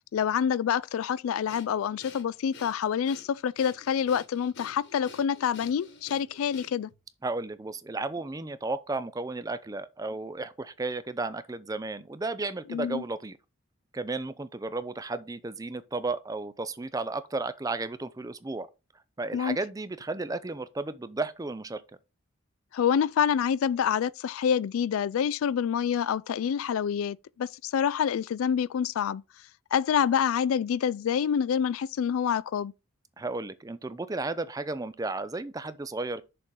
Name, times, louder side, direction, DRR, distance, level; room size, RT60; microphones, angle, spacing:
voice 1, 0.1-6.9 12.7-13.0 19.3-19.6 22.7-29.2 29.7-32.7, left 8 dB, 85° left, 0.3 m, -27 dB
Breathing, 1.5-7.0, left 4 dB, 55° left, 1.3 m, -49 dB
voice 2, 7.2-13.4 13.9-18.7 19.2-21.8 33.2-36.2, right 3 dB, 15° right, 0.4 m, -33 dB
6.8 x 3.7 x 6.2 m
head